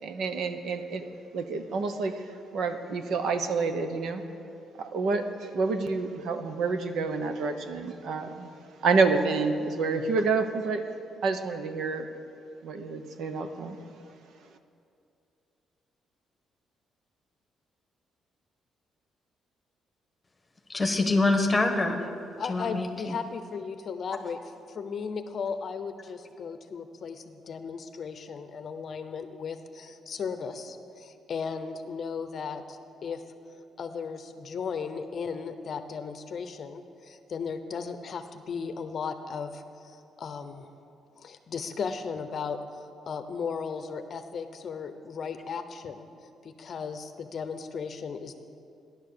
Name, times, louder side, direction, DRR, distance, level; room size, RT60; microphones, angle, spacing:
voice 1, 0.0-1.1 1.3-4.2 4.8-8.5 8.8-10.8 11.2-12.1 12.6-13.8, right 4 dB, 60° right, 8 dB, 1.0 m, -28 dB
voice 2, 20.7-22.0 22.5-23.1, left 2 dB, 10° left, 4 dB, 1.3 m, -25 dB
voice 3, 22.4-24.4 24.7-33.2 33.8-40.7 41.2-46.1 46.4-48.4, left 5 dB, 40° left, 9 dB, 0.8 m, -36 dB
15.5 x 11.0 x 6.8 m, 2.6 s
cardioid pair, 165°, 0 cm